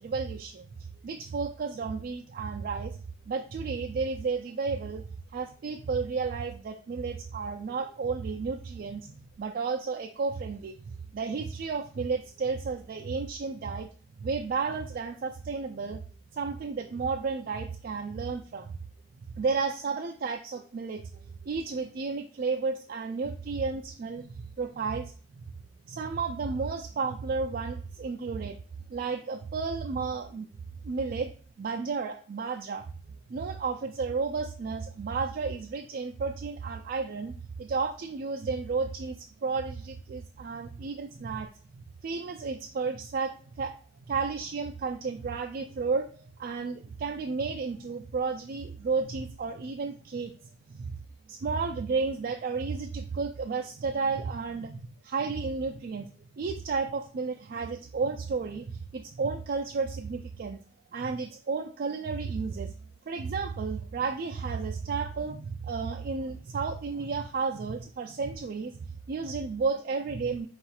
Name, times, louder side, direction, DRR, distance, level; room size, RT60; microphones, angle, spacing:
voice 1, 0.0-3.0 3.3-13.9 14.2-16.0 16.3-18.7 19.4-25.4 25.9-28.6 28.9-30.5 30.8-31.3 31.6-41.5 42.0-43.8 44.1-51.0 51.3-60.6 60.9-62.7 63.1-68.8 69.1-70.5, right 4 dB, 55° right, 3 dB, 0.3 m, -32 dB
4.7 x 2.4 x 4.2 m, 0.42 s
head